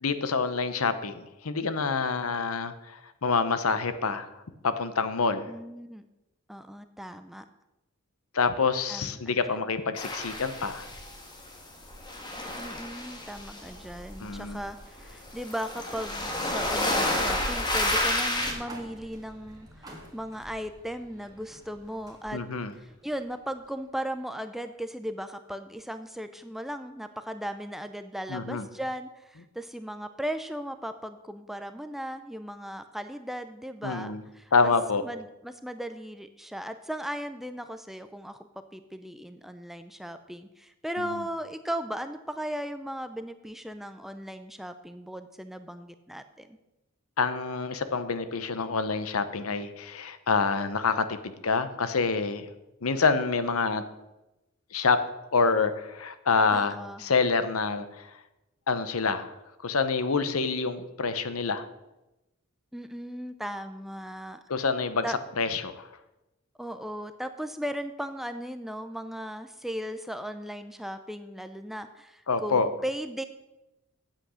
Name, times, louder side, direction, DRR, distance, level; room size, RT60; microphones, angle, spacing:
voice 1, 0.0-4.3 4.6-5.5 8.3-10.9 14.2-14.6 22.3-22.7 28.3-28.7 33.8-34.2 34.5-35.0 41.0-41.2 47.2-52.5 52.8-53.8 54.7-55.0 55.3-58.1 58.7-59.3 59.6-61.6 64.5-65.0 65.4-65.9 72.3-72.7, left 4 dB, 75° left, 11 dB, 0.8 m, -27 dB
voice 2, 5.5-6.1 6.5-7.4 8.9-9.2 12.6-22.4 22.8-34.7 35.0-38.4 38.7-46.6 56.5-57.0 62.7-64.4 65.0-65.2 66.6-73.2, equal, ahead, 9 dB, 0.4 m, -37 dB
sound 1, 10.0-11.6 11.8-18.5, left 1 dB, 20° left, 1.5 m, -30 dB
sound 2, 18.2-24.1, right 1 dB, 20° right, 1.7 m, -49 dB
8.8 x 7.7 x 6.3 m, 0.96 s
head